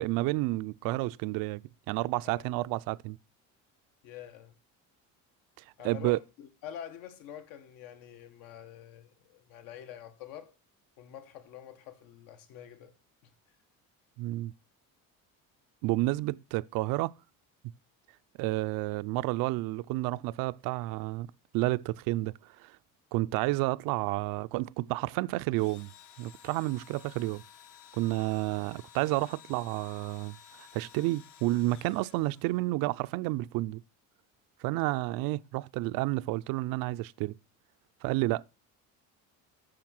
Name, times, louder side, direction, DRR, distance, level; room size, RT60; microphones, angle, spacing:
voice 1, 0.0-1.6 1.9-3.2 5.8-6.2 14.2-14.5 15.8-17.1 18.4-21.3 21.5-22.3 22.6-22.8 23.1-25.9 26.2-27.4 27.9-33.8 34.6-37.4 38.0-38.4, right 19 dB, 85° right, 0.5 m, -30 dB
voice 2, 4.0-4.5 5.8-10.5 11.0-12.9 13.2-13.3, left 10 dB, 80° left, 1.6 m, -46 dB
Engine / Drill, 25.5-32.8, left 9 dB, 60° left, 1.1 m, -54 dB
8.8 x 6.4 x 5.9 m
cardioid pair, 175°, 33 cm